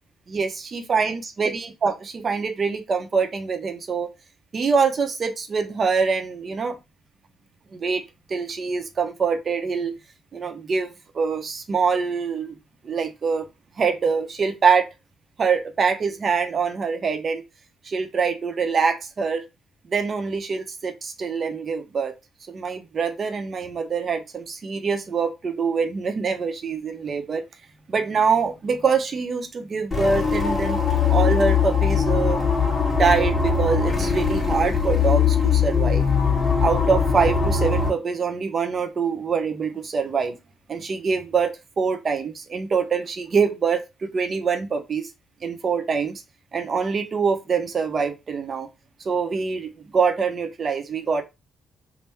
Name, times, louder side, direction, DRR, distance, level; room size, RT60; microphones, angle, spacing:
voice 1, 0.3-4.1 4.5-6.8 7.7-8.0 8.3-10.0 10.3-12.6 12.8-13.5 13.8-14.9 15.4-17.4 17.8-19.4 19.9-22.1 22.5-27.4 27.9-30.8 31.1-32.4 32.9-36.0 36.6-40.4 40.7-45.1 45.4-46.2 46.5-48.7 49.0-51.2, right 5 dB, 45° right, 0.7 m, -24 dB
sound 1, 29.9-37.9, left 6 dB, 20° left, 1.6 m, -21 dB
3.4 x 2.2 x 4.3 m
cardioid pair, 90°, 0 cm